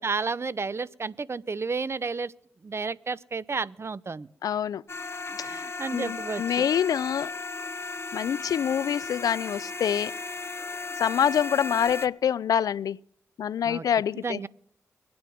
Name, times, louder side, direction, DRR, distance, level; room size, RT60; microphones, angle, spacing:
voice 1, 0.0-2.3 2.6-4.3 5.4-6.7 13.6-13.8 14.2-14.5, right 4 dB, 45° right, 0.7 m, -32 dB
voice 2, 4.4-4.8 5.4-7.3 8.1-10.2 11.0-13.0 13.4-14.4, left 9 dB, 75° left, 0.4 m, -26 dB
sound 1, 4.9-12.1, left 3 dB, 45° left, 1.0 m, -35 dB
23.0 x 9.6 x 3.6 m
supercardioid pair, 40°, 6 cm